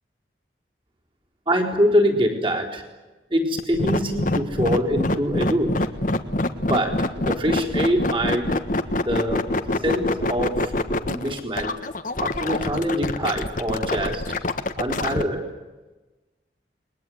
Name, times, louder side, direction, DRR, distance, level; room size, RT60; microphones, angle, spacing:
voice 1, 1.5-2.8 3.3-5.9 6.6-8.6 8.9-9.6 9.8-10.7 11.1-11.7 12.2-14.3 14.8-15.5, equal, 30° right, 0 dB, 4.1 m, -24 dB
sound 1, 3.6-15.2, left 2 dB, 45° left, 1.5 m, -25 dB
29.0 x 22.0 x 9.4 m, 1.2 s
head